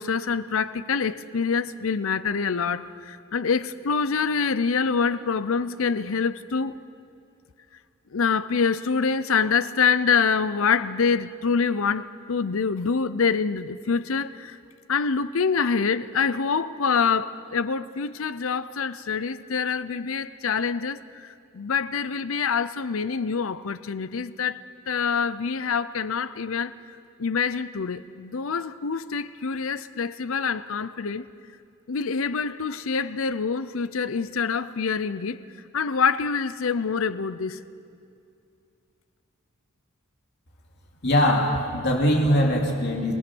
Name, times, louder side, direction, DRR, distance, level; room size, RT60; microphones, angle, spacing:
voice 1, 0.0-6.8 8.1-14.6 14.9-21.3 21.5-26.7 27.2-31.3 31.9-35.4 35.7-37.6, left 5 dB, 70° left, 0.6 m, -25 dB
voice 2, 41.0-43.1, equal, 55° left, 2.9 m, -21 dB
27.5 x 18.5 x 6.2 m
head